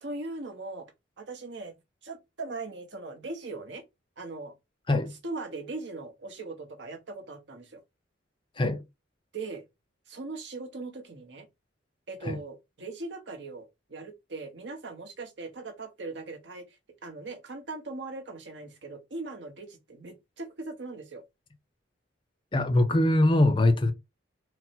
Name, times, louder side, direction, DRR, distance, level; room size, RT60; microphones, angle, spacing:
voice 1, 0.0-1.7 2.0-3.8 4.2-4.5 5.2-7.8 9.3-9.6 10.1-11.5 12.1-16.8 17.0-21.2, right 3 dB, 65° right, 0.9 m, -40 dB
voice 2, 22.5-23.9, left 1 dB, 25° left, 0.5 m, -22 dB
4.2 x 2.0 x 4.2 m
head